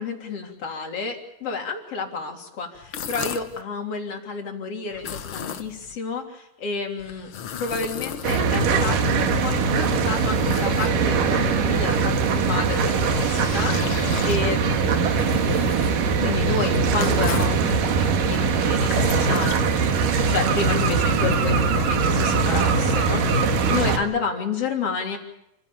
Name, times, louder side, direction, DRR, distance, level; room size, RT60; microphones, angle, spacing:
voice 1, 0.0-7.3 7.6-15.4 16.2-23.2 23.7-25.2, left 4 dB, 45° left, 1 dB, 4.1 m, -30 dB
sound 1, 2.8-3.6 4.9-6.0 7.0-8.8 9.5-11.3 12.7-17.6 18.6-20.2, left 8 dB, 70° left, 1.2 m, -36 dB
sound 2, 8.2-24.0, right 4 dB, 75° right, 3.5 m, -21 dB
28.5 x 16.0 x 8.7 m, 0.85 s
omnidirectional pair, 3.9 m